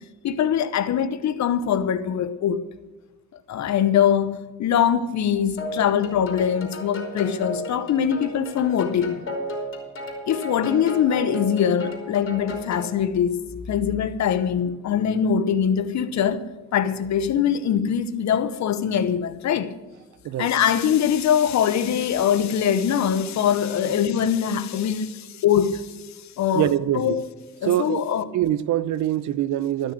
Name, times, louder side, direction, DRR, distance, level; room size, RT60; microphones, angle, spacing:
voice 1, 0.2-2.6 3.5-9.2 10.3-13.4 13.7-16.4 16.7-19.7 20.4-26.0 26.4-27.2 27.6-28.2, left 8 dB, 65° left, 0.9 m, -22 dB
sound 1, 5.6-13.0, left 1 dB, 40° left, 3.4 m, -34 dB
voice 2, 20.2-20.6 23.9-24.0 26.5-27.2 27.6-28.0 28.3-29.9, right 12 dB, 70° right, 0.6 m, -24 dB
13.0 x 6.4 x 8.6 m
cardioid pair, 90°, 30 cm